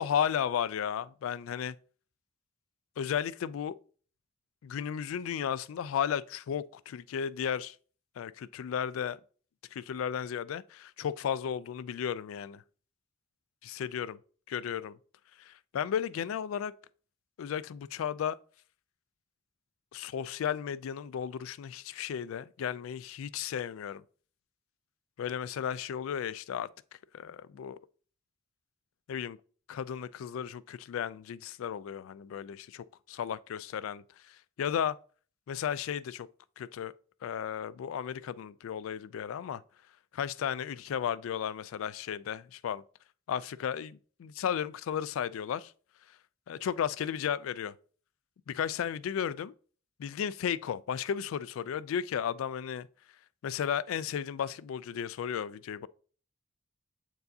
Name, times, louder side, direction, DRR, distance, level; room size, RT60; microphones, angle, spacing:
voice 1, 0.0-1.8 3.0-3.8 4.6-7.8 8.2-9.2 9.7-12.6 13.6-14.2 14.5-15.0 15.4-16.7 17.4-18.4 19.9-24.0 25.2-26.7 27.1-27.8 29.1-29.4 29.7-35.0 35.5-36.3 36.6-36.9 37.2-39.6 40.1-42.8 43.3-45.7 46.5-47.7 48.5-49.5 50.0-52.9 53.4-55.9, left 8 dB, 85° left, 0.3 m, -34 dB
7.6 x 4.6 x 2.7 m
head